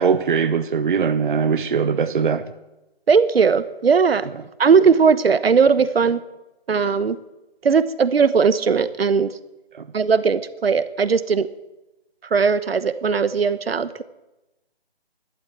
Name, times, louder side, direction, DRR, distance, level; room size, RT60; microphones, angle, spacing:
voice 1, 0.0-2.5 9.7-9.9, right 6 dB, 55° right, 0.9 m, -21 dB
voice 2, 3.1-4.3 4.6-6.2 6.7-7.2 7.6-9.3 9.9-11.5 12.3-14.0, right 5 dB, 70° right, 1.1 m, -18 dB
12.5 x 12.0 x 8.9 m
hypercardioid pair, 165°, 31 cm